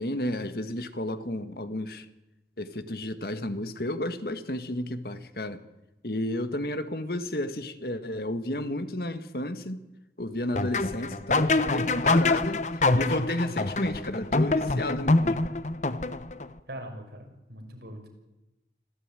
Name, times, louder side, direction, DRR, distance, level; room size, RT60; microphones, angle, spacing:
voice 1, 0.0-2.1 2.6-5.6 6.0-9.8 10.2-12.7 12.9-15.4, left 1 dB, 55° left, 1.7 m, -32 dB
sound 1, 10.6-16.5, left 2 dB, 40° left, 1.0 m, -25 dB
voice 2, 16.7-18.1, right 1 dB, 70° right, 5.7 m, -41 dB
26.0 x 15.5 x 9.1 m
head